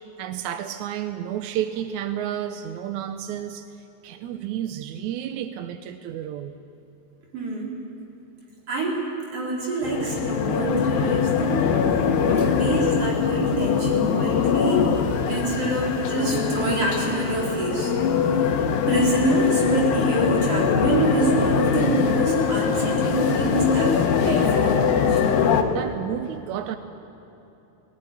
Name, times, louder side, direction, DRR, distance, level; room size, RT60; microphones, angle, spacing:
voice 1, 0.2-3.7 4.0-6.6 25.4-26.8, right 10 dB, 75° right, 9 dB, 1.8 m, -31 dB
voice 2, 7.3-7.8 8.7-9.0 9.3-11.7 12.3-14.9 15.3-17.9 18.4-24.0 24.2-25.2, right 2 dB, 40° right, -3 dB, 5.2 m, -26 dB
sound 1, 9.8-25.6, left 6 dB, 85° left, 3.2 m, -22 dB
19.0 x 18.5 x 9.9 m, 3.0 s
omnidirectional pair, 4.2 m